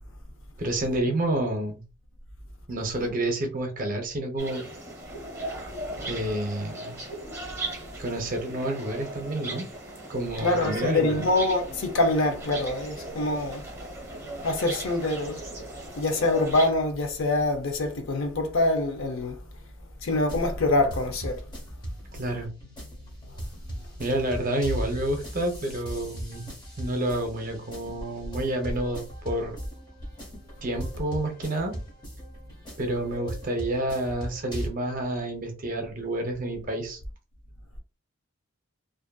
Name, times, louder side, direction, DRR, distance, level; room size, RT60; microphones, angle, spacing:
voice 1, 0.6-1.8 2.7-4.6 6.1-7.0 8.0-9.7 10.1-11.2 22.1-22.5 24.0-26.5 26.8-29.6 30.6-31.8 32.8-37.0, right 1 dB, 40° right, 0.6 m, -29 dB
sound 1, 4.4-16.7, right 1 dB, 15° right, 1.0 m, -38 dB
voice 2, 10.4-13.7 14.4-15.4 16.0-19.4 20.0-21.4, left 2 dB, 65° left, 0.5 m, -25 dB
sound 2, 20.2-34.7, equal, 20° left, 0.7 m, -39 dB
2.5 x 2.5 x 2.2 m
head